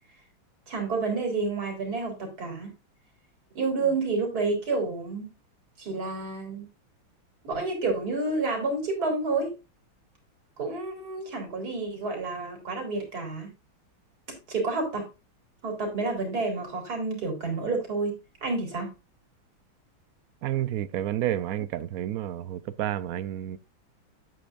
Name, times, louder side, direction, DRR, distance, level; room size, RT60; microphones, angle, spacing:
voice 1, 0.7-2.7 3.5-5.3 5.8-6.6 7.4-9.6 10.6-13.5 14.5-15.1 15.6-18.9, right 3 dB, 50° right, 4.0 m, -29 dB
voice 2, 20.4-23.6, right 12 dB, 80° right, 0.8 m, -30 dB
9.8 x 8.5 x 2.5 m
omnidirectional pair, 2.2 m